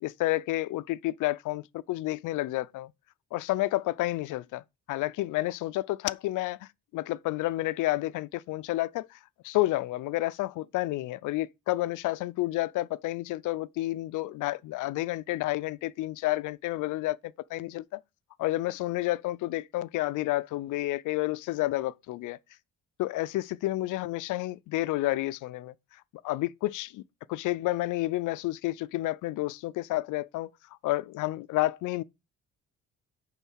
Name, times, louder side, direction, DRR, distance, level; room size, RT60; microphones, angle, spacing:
voice 1, 0.0-2.9 3.3-4.6 4.9-9.2 9.4-18.0 18.4-22.4 23.0-25.7 26.2-27.0 27.3-30.5 30.8-32.0, left 17 dB, 85° left, 0.5 m, -30 dB
9.0 x 3.9 x 6.2 m
cardioid pair, 90°, 30 cm